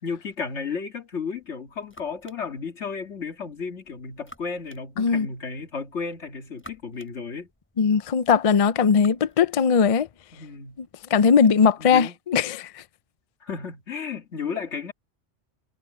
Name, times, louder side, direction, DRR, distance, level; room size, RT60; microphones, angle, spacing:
voice 1, 0.0-7.5 10.3-10.8 11.8-12.1 13.4-14.9, left 5 dB, 65° left, 2.2 m, -33 dB
sound 1, 1.2-11.4, left 1 dB, 10° left, 6.3 m, -54 dB
voice 2, 7.8-10.1 10.8-10.9 11.1-12.8, left 6 dB, 50° left, 0.4 m, -19 dB
omnidirectional pair, 1.3 m